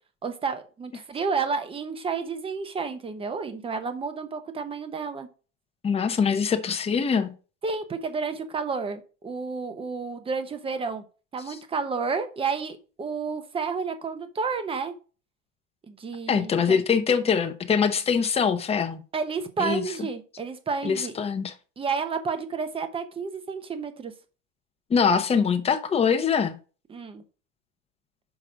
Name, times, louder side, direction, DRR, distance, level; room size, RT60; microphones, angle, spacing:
voice 1, 0.2-5.3 7.6-11.0 11.3-14.9 15.9-16.5 19.1-21.2 21.8-24.1 26.9-27.2, right 5 dB, 15° right, 0.9 m, -31 dB
voice 2, 5.8-7.3 16.3-19.0 19.6-19.8 20.8-21.5 24.9-26.6, left 6 dB, 15° left, 0.8 m, -23 dB
6.2 x 4.8 x 5.0 m
supercardioid pair, 150°, 38 cm